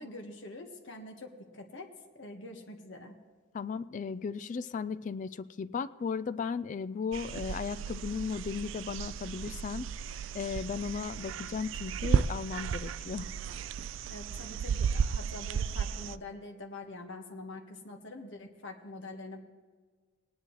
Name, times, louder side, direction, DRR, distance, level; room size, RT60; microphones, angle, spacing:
voice 1, 0.0-1.9 2.1-3.2 14.1-19.4, left 2 dB, 70° left, 3 dB, 1.5 m, -45 dB
voice 2, 3.5-9.9 10.3-13.3, left 5 dB, 40° left, 16 dB, 0.3 m, -36 dB
sound 1, 7.1-16.2, right 7 dB, 85° right, 0.4 m, -34 dB
19.0 x 10.0 x 3.2 m, 1.5 s
head